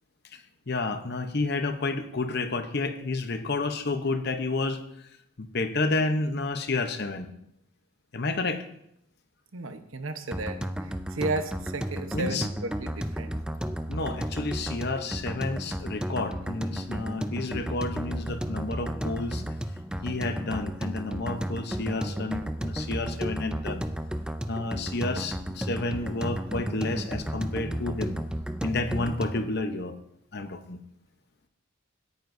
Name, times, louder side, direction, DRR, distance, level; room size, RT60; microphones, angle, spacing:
voice 1, 0.3-4.8 5.4-7.3 8.1-8.6 12.1-12.5 13.9-19.4 20.0-23.8 24.5-28.2 28.6-30.0 30.3-30.8, left 3 dB, 50° left, 8 dB, 0.8 m, -30 dB
voice 2, 9.5-13.3, right 3 dB, 70° right, 8 dB, 1.0 m, -34 dB
sound 1, 10.3-29.5, equal, 5° right, 0.3 m, -33 dB
17.5 x 9.3 x 2.7 m, 0.78 s
head